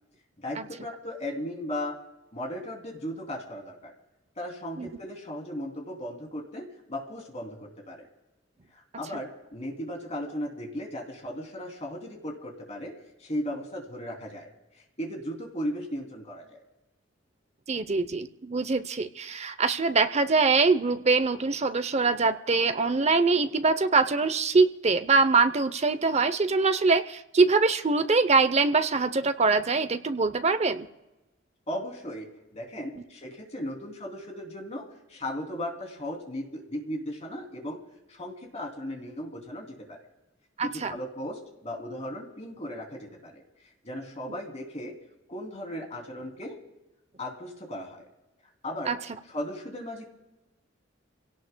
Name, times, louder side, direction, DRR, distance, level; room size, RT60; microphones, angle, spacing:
voice 1, 0.4-2.0 2.3-3.9 4.4-8.1 8.7-12.9 13.2-14.5 15.0-16.6 31.7-34.8 35.1-37.8 38.1-40.0 40.6-43.4 43.8-44.9 45.3-46.6 47.2-48.1 48.6-48.9 49.3-50.1, equal, 35° left, 1 dB, 3.0 m, -36 dB
voice 2, 17.7-30.9 40.6-40.9 48.9-49.0, right 4 dB, 35° right, 11 dB, 0.7 m, -23 dB
28.5 x 17.5 x 2.3 m, 1.0 s
head